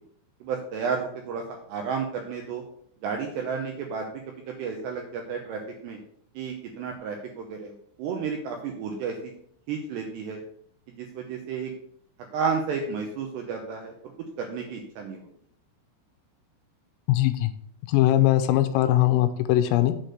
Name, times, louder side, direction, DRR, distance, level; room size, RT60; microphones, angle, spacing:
voice 1, 0.4-2.6 3.0-6.0 6.4-9.3 9.7-10.4 11.0-11.7 12.3-14.1 14.4-15.3, right 5 dB, 80° right, 2 dB, 2.5 m, -32 dB
voice 2, 17.1-17.5 17.9-19.9, left 14 dB, 85° left, 9 dB, 3.2 m, -21 dB
8.1 x 4.4 x 6.5 m, 0.65 s
omnidirectional pair, 6.0 m